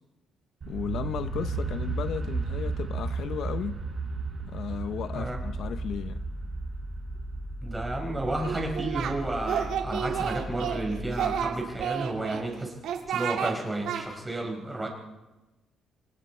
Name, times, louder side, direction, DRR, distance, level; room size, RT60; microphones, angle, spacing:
sound 1, 0.6-12.4, right 4 dB, 35° right, 5.2 m, -35 dB
voice 1, 0.7-3.9 4.4-6.2, left 8 dB, 60° left, 0.8 m, -34 dB
sound 2, 5.2-11.4, equal, 20° left, 5.4 m, -38 dB
voice 2, 7.6-12.7 13.1-14.9, right 2 dB, 10° right, 4.6 m, -32 dB
Singing, 8.4-9.1 9.4-10.8 11.1-12.4 12.8-13.5 13.8-14.0, right 9 dB, 80° right, 3.0 m, -30 dB
28.0 x 25.0 x 4.4 m
cardioid pair, 160°, 0 cm